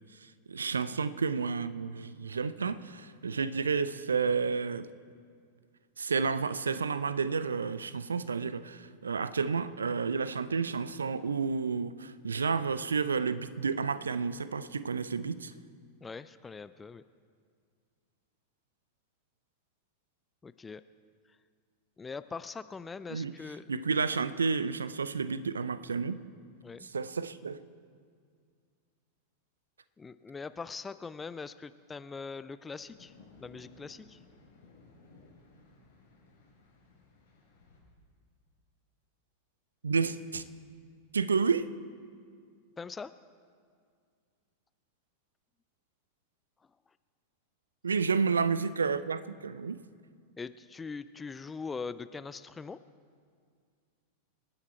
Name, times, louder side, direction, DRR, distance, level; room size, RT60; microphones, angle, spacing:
voice 1, 0.5-4.9 6.0-15.5 23.1-23.3 23.7-26.2 26.9-27.6 39.8-40.4 41.1-41.7 47.8-49.8, right 5 dB, 75° right, 15 dB, 0.5 m, -31 dB
voice 2, 16.0-17.0 20.4-20.8 22.0-23.7 26.6-26.9 30.0-33.1 33.4-34.2 42.8-43.1 50.4-52.8, left 4 dB, 15° left, 14 dB, 0.4 m, -42 dB
sound 1, 32.7-37.8, left 3 dB, 65° left, 4.9 m, -58 dB
27.0 x 9.7 x 4.3 m, 2.1 s
figure-of-eight pair, 90°, 0 cm